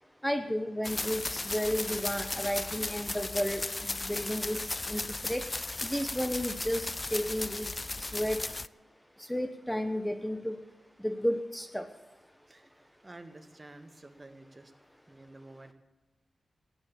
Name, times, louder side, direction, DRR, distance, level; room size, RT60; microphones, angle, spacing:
voice 1, 0.2-3.6 3.9-5.5 5.8-7.7 8.0-8.5 9.2-10.6 11.0-11.9, equal, 5° left, 8 dB, 1.1 m, -32 dB
sound 1, 0.8-8.7, left 2 dB, 35° left, 0.4 m, -36 dB
voice 2, 12.5-14.7 15.1-15.7, right 2 dB, 30° right, 8 dB, 1.8 m, -51 dB
15.0 x 9.8 x 8.4 m, 1.1 s
cardioid pair, 50°, 0 cm